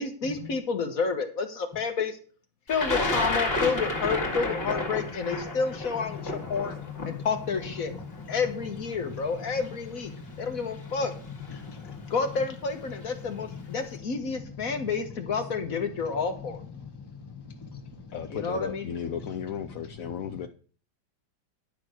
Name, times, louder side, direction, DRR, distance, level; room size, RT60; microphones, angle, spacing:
voice 1, 0.0-2.2 2.7-6.7 7.1-7.9 8.3-10.1 10.4-11.1 12.1-16.6 18.3-18.9, left 5 dB, 50° left, 7 dB, 1.5 m, -30 dB
Thunder, 2.7-8.7 9.6-9.7 10.9-11.1 11.4-11.9, left 2 dB, 30° left, 2.2 m, -31 dB
voice 2, 6.1-7.3 8.0-8.4 9.0-9.2 10.1-10.7 11.5-12.1 13.5-13.7 14.7-14.8 16.8-18.2 19.7-19.8, left 6 dB, 15° left, 3 dB, 1.2 m, -42 dB
voice 3, 18.1-20.5, left 8 dB, 65° left, 7 dB, 0.8 m, -35 dB
10.5 x 5.9 x 6.5 m, 0.41 s
omnidirectional pair, 2.2 m